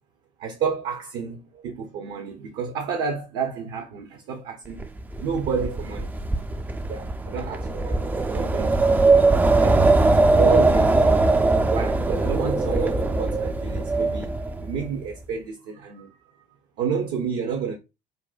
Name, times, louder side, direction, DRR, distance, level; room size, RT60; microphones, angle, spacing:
voice 1, 0.4-4.8 5.2-6.1 6.9-9.3 9.6-9.8 10.3-11.2 11.7-14.3 14.6-16.1 16.8-17.8, right 6 dB, 55° right, 0.6 m, -30 dB
Wind, 4.8-14.9, right 3 dB, 10° right, 0.3 m, -21 dB
3.9 x 2.1 x 2.4 m
figure-of-eight pair, 60°, 21 cm